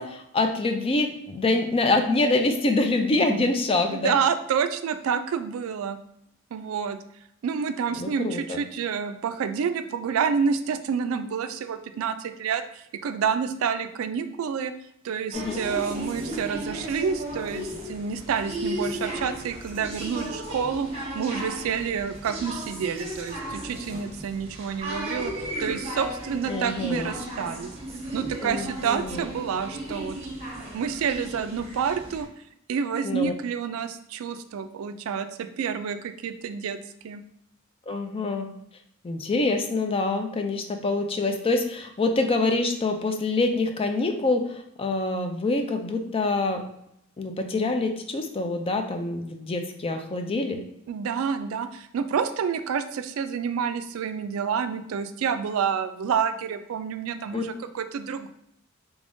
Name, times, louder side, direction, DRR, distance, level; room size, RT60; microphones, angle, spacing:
voice 1, 0.0-4.2 7.9-8.6 15.3-15.6 26.5-27.1 28.4-29.3 33.0-33.3 37.9-38.5 39.0-46.6 47.2-50.6 57.3-57.4, left 2 dB, 25° left, 5 dB, 0.4 m, -25 dB
voice 2, 3.9-6.0 6.5-7.0 7.4-14.7 15.0-27.7 28.1-30.2 30.7-32.3 32.7-36.8 37.0-37.2 50.9-58.3, right 6 dB, 70° right, 10 dB, 0.3 m, -28 dB
sound 1, 15.3-32.2, right 1 dB, 30° right, 1.0 m, -35 dB
3.5 x 3.5 x 2.6 m, 0.75 s
head